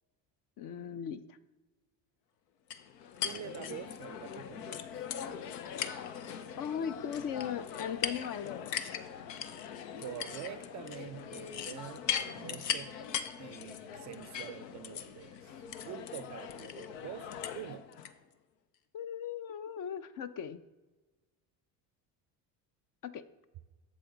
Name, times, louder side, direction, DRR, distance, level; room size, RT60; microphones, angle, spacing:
voice 1, 0.6-1.4 6.6-8.7 18.9-20.6 23.0-23.3, left 8 dB, 45° left, 0.5 m, -38 dB
sound 1, 2.7-18.1, left 8 dB, 85° left, 0.7 m, -40 dB
voice 2, 3.2-5.1 10.0-13.0 13.4-17.9, right 12 dB, 40° right, 0.4 m, -46 dB
7.6 x 7.2 x 3.8 m
hypercardioid pair, 75°, 49 cm